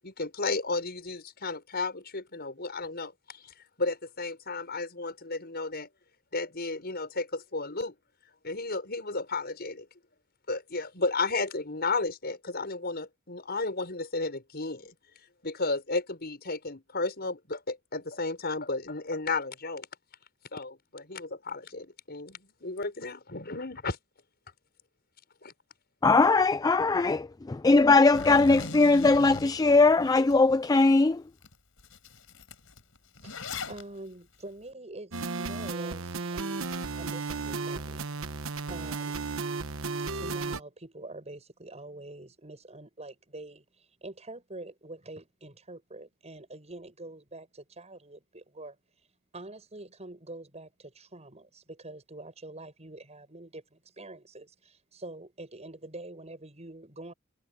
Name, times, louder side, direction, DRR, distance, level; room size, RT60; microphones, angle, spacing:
voice 1, 0.0-5.9 6.3-7.9 8.4-9.9 10.5-14.9 15.4-19.9 20.5-24.0 25.4-25.5, left 3 dB, 50° left, 6.5 m, -33 dB
voice 2, 26.0-31.2, left 3 dB, 20° left, 0.3 m, -20 dB
Zipper (clothing), 28.1-30.4 30.8-30.9 31.4-31.5 31.8-33.8, left 3 dB, 70° left, 5.9 m, -40 dB
voice 3, 33.2-38.1 38.7-39.3 40.1-48.8 49.3-57.1, right 2 dB, 30° right, 8.0 m, -45 dB
sound 1, 35.1-40.6, right 4 dB, 70° right, 1.2 m, -34 dB
head